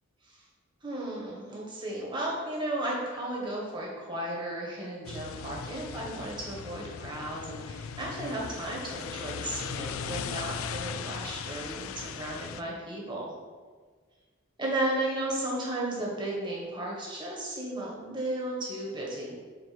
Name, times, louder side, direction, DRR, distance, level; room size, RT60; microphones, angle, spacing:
voice 1, 0.8-13.3 14.6-19.4, right 1 dB, 20° right, -3 dB, 1.4 m, -34 dB
sound 1, 5.0-12.6, left 6 dB, 80° left, 0.3 m, -38 dB
4.8 x 4.5 x 5.9 m, 1.5 s
head